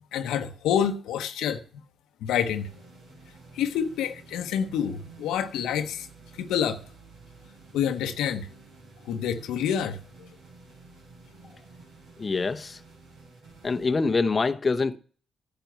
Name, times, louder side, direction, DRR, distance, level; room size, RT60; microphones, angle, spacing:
voice 1, 0.1-1.6 2.2-2.7 3.5-6.1 6.4-6.8 7.7-8.5 9.1-10.3, left 8 dB, 80° left, 0.9 m, -27 dB
sound 1, 2.3-14.4, right 4 dB, 80° right, 5.3 m, -51 dB
voice 2, 12.2-12.8 13.6-15.0, left 4 dB, 35° left, 0.7 m, -25 dB
10.5 x 6.8 x 9.1 m
supercardioid pair, 55°, 0 cm